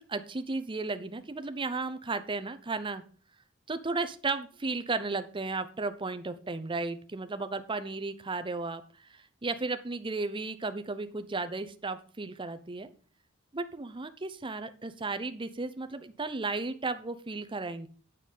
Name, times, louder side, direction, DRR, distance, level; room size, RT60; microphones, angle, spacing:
voice 1, 0.0-3.0 3.7-8.8 9.1-12.9 13.5-17.9, right 3 dB, 25° right, 10 dB, 0.7 m, -34 dB
8.9 x 6.7 x 5.5 m, 0.43 s
head